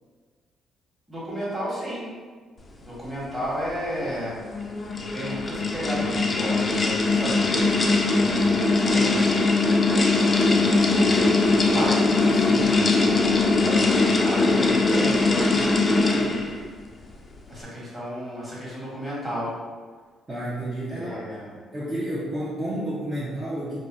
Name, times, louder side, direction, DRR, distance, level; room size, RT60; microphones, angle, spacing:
voice 1, 1.1-2.1 2.8-4.4 4.9-7.7 8.2-9.4 10.5-16.4 17.5-19.5 20.9-21.5, equal, 10° right, -7 dB, 1.3 m, -33 dB
sound 1, 4.4-16.6, left 3 dB, 30° left, 0.4 m, -21 dB
voice 2, 20.3-21.5 21.7-23.8, right 1 dB, 30° right, -9 dB, 0.7 m, -31 dB
2.6 x 2.1 x 3.6 m, 1.5 s
cardioid pair, 85°, 0 cm